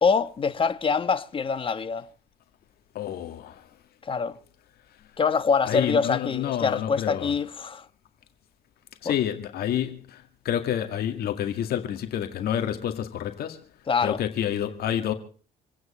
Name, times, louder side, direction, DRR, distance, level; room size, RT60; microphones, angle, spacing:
voice 1, 0.0-2.1 4.0-4.4 5.2-7.9 9.0-9.1 13.9-14.2, left 5 dB, 30° left, 1.2 m, -25 dB
voice 2, 2.9-3.7 4.3-4.4 4.9-5.0 5.7-7.4 9.0-13.6 14.0-15.1, left 10 dB, 65° left, 2.0 m, -29 dB
27.5 x 9.5 x 4.3 m
cardioid pair, 110°, 17 cm